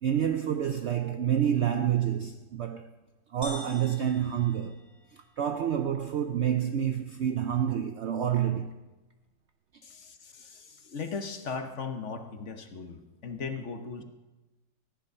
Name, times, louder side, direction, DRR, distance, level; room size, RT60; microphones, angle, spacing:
voice 1, 0.0-2.9 3.3-4.8 5.1-8.8, right 9 dB, 90° right, 0.6 m, -28 dB
sound 1, 3.4-5.4, left 1 dB, 15° left, 2.1 m, -46 dB
voice 2, 9.8-14.0, left 5 dB, 50° left, 1.2 m, -38 dB
14.0 x 10.5 x 5.4 m
omnidirectional pair, 1.8 m